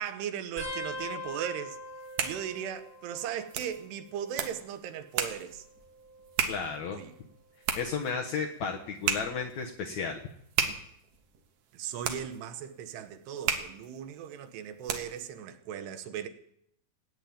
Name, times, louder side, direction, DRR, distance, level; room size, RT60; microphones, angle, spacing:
voice 1, 0.0-1.8 2.2-5.7 6.9-7.1 11.7-16.3, right 9 dB, 85° right, 3.2 m, -37 dB
sound 1, 0.6-3.7 4.0-4.6 5.6-7.1 7.7-8.1 9.3-9.6 11.1-11.2, left 1 dB, 20° right, 7.7 m, -43 dB
sound 2, 1.8-15.3, right 7 dB, 65° right, 2.6 m, -36 dB
voice 2, 6.5-7.0 7.8-10.2, left 5 dB, 65° left, 1.8 m, -33 dB
17.5 x 9.2 x 8.6 m
omnidirectional pair, 4.7 m